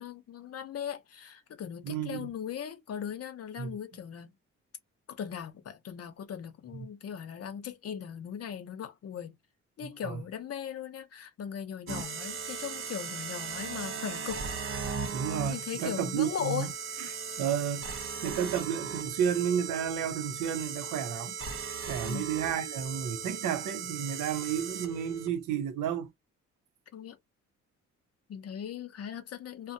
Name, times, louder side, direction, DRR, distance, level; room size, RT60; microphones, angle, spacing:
voice 1, 0.0-4.3 5.1-9.4 9.8-14.4 15.5-16.7 22.0-22.3 26.9-27.2 28.3-29.7, left 8 dB, 55° left, 0.7 m, -38 dB
voice 2, 1.8-2.3 3.6-3.7 9.8-10.2 15.1-16.7 17.0-21.4 21.9-26.1, right 9 dB, 80° right, 0.7 m, -32 dB
sound 1, 11.9-25.3, right 5 dB, 45° right, 0.9 m, -38 dB
2.7 x 2.1 x 2.7 m
cardioid pair, 90°, 30 cm